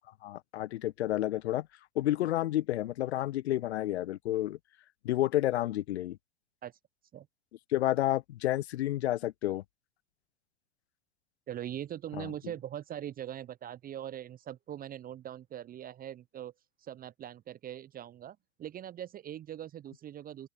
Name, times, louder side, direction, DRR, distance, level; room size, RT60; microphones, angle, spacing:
voice 1, 0.2-1.7 1.9-4.6 5.0-6.2 7.7-9.6 12.2-12.3, left 14 dB, 65° left, 1.1 m, -30 dB
voice 2, 11.5-16.5 16.8-20.5, right 11 dB, 25° right, 0.8 m, -41 dB
open air
figure-of-eight pair, 85°, 36 cm